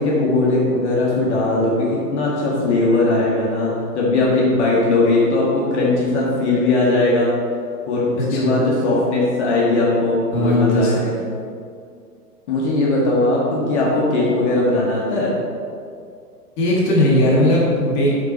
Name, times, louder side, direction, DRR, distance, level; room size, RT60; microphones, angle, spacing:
voice 1, 0.0-7.3 7.9-11.0 12.5-15.3, left 2 dB, 45° left, -4 dB, 2.0 m, -19 dB
voice 2, 8.2-8.6 10.3-11.2 16.6-18.1, left 1 dB, 25° left, -4 dB, 2.0 m, -18 dB
8.8 x 5.7 x 4.5 m, 2.3 s
figure-of-eight pair, 110°, 48 cm